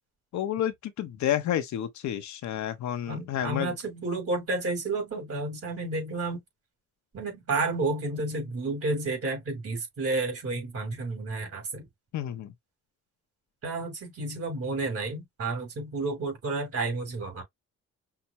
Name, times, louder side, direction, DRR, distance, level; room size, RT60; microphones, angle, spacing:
voice 1, 0.3-3.7 12.1-12.5, left 11 dB, 70° left, 0.8 m, -30 dB
voice 2, 3.1-6.4 7.1-11.9 13.6-17.4, right 3 dB, 50° right, 3.1 m, -31 dB
5.8 x 2.0 x 2.9 m
cardioid pair, 90°, 30 cm